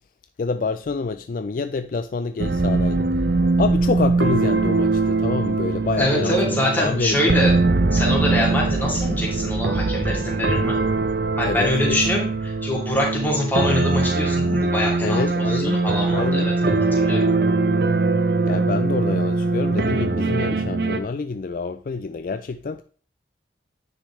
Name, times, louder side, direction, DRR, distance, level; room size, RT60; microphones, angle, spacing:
voice 1, 0.4-3.1 3.6-7.4 11.4-12.0 15.0-15.8 16.1-16.5 18.4-22.8, left 4 dB, 50° left, 0.4 m, -27 dB
sound 1, 2.4-21.0, right 3 dB, 65° right, 0.7 m, -21 dB
voice 2, 6.0-7.5 7.9-10.8 11.4-17.3, left 1 dB, 10° left, 2.8 m, -24 dB
9.7 x 6.5 x 3.2 m
head